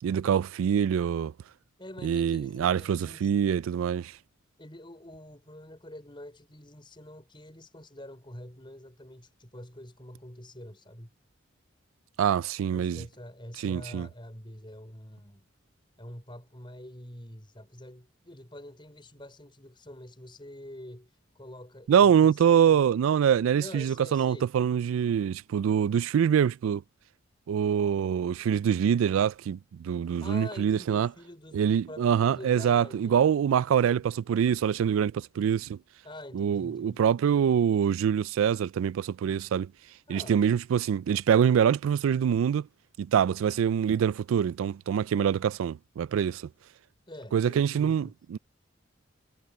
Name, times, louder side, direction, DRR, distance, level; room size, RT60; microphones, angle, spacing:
voice 1, 0.0-1.3 2.0-4.1 12.2-13.0 13.6-14.1 21.9-26.8 27.5-31.1 31.5-35.8 36.4-39.7 40.1-42.7 43.0-46.4 47.3-48.4, right 8 dB, 80° right, 0.3 m, -25 dB
voice 2, 1.8-3.3 4.6-11.1 12.7-15.5 16.0-22.9 23.6-24.5 30.2-33.4 36.0-37.1 40.1-40.4 47.1-48.1, left 1 dB, 25° left, 5.5 m, -46 dB
head